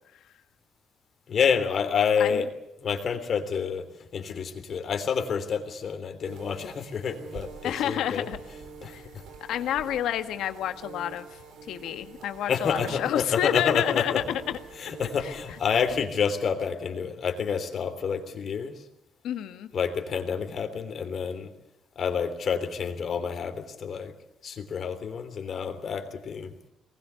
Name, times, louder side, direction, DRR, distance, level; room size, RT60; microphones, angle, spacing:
voice 1, 1.3-2.5 2.8-3.8 4.1-8.3 8.8-8.9 12.5-14.2 14.8-18.7 19.7-21.5 21.9-24.1 24.4-26.5, left 6 dB, 55° left, 7 dB, 3.2 m, -28 dB
sound 1, 6.2-16.0, right 4 dB, 85° right, 4.3 m, -45 dB
voice 2, 7.6-8.4 8.9-9.0 9.5-11.3 11.7-14.6 15.2-15.4 19.2-19.7, left 11 dB, 80° left, 9 dB, 1.5 m, -29 dB
22.5 x 20.0 x 8.2 m, 0.83 s
cardioid pair, 90°, 0 cm